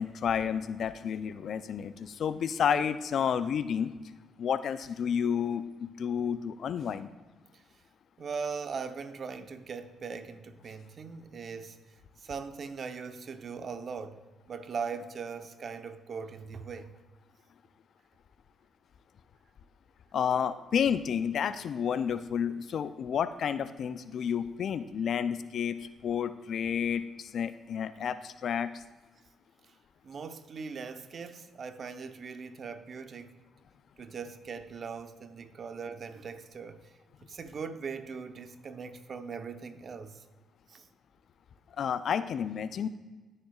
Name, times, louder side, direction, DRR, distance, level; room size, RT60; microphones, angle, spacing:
voice 1, 0.0-3.9 4.4-7.1 20.1-25.8 26.0-28.7 41.8-42.9, left 7 dB, 65° left, 0.4 m, -30 dB
voice 2, 8.2-16.9 29.7-29.8 30.0-33.4 34.0-36.9 37.2-40.3 40.7-40.9, right 5 dB, 55° right, 0.8 m, -40 dB
18.0 x 6.6 x 2.4 m
supercardioid pair, 55°, 0 cm